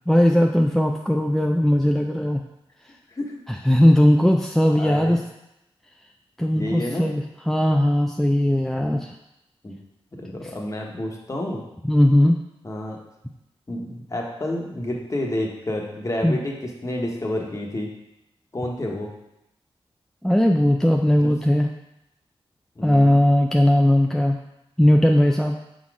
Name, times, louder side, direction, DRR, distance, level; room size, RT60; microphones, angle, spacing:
voice 1, 0.1-2.4 3.6-5.2 6.4-9.1 11.8-12.4 16.2-16.4 20.2-21.7 22.8-24.4 24.8-25.6, left 1 dB, 5° left, 1 dB, 0.4 m, -18 dB
voice 2, 4.8-5.2 6.5-7.1 8.9-9.0 9.6-9.8 10.1-11.6 12.6-13.0 13.7-16.5 16.8-17.9 18.5-19.1 21.2-21.3 22.7-23.1, left 1 dB, 30° left, -1 dB, 1.2 m, -29 dB
5.8 x 4.1 x 4.8 m, 0.87 s
wide cardioid pair, 75°, 10 cm